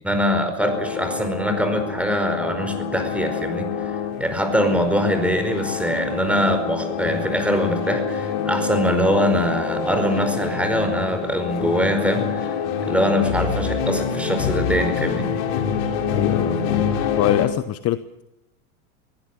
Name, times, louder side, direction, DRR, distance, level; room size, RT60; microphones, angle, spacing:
voice 1, 0.0-15.3, equal, 5° right, 7 dB, 4.9 m, -23 dB
sound 1, 0.6-17.5, left 6 dB, 65° left, 4.0 m, -26 dB
voice 2, 16.1-16.8 17.2-18.0, left 13 dB, 35° left, 13 dB, 0.9 m, -23 dB
23.0 x 16.0 x 9.7 m, 0.87 s
supercardioid pair, 120°, 44 cm